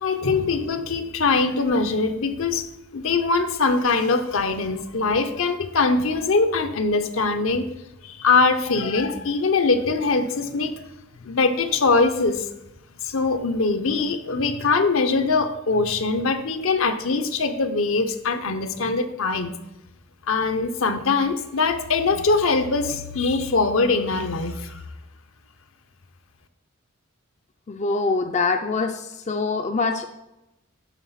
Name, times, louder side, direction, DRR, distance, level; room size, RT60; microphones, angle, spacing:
voice 1, 0.0-7.7 8.0-10.8 11.2-12.5 13.0-19.5 20.3-24.8, left 4 dB, 70° left, 8 dB, 0.8 m, -22 dB
voice 2, 27.7-30.1, left 4 dB, 35° left, 5 dB, 0.4 m, -24 dB
11.0 x 4.0 x 5.7 m, 0.94 s
head